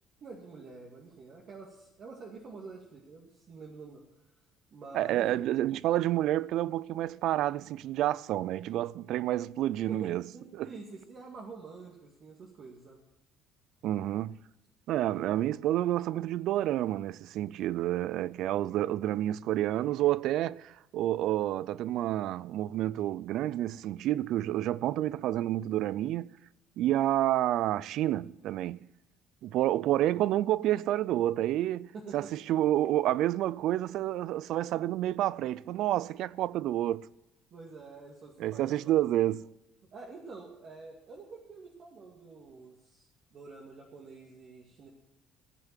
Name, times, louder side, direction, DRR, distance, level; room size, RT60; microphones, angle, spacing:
voice 1, 0.2-4.0 4.7-5.4 9.9-13.0 15.1-15.4 31.9-32.3 37.5-38.9 39.9-44.9, right 4 dB, 45° right, 2.2 m, -47 dB
voice 2, 4.9-10.2 10.5-10.7 13.8-14.4 14.9-26.4 26.8-28.8 29.4-37.1 38.4-39.5, right 13 dB, 65° right, 0.4 m, -29 dB
15.5 x 8.1 x 7.5 m
cardioid pair, 130°, 0 cm